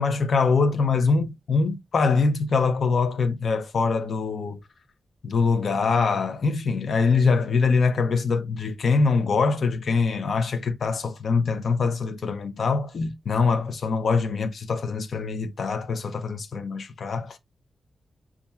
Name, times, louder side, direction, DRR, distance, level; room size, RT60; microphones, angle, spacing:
voice 1, 0.0-4.6 5.2-17.4, left 4 dB, 60° left, 0.5 m, -23 dB
5.4 x 2.3 x 2.2 m
wide cardioid pair, 140°, 0 cm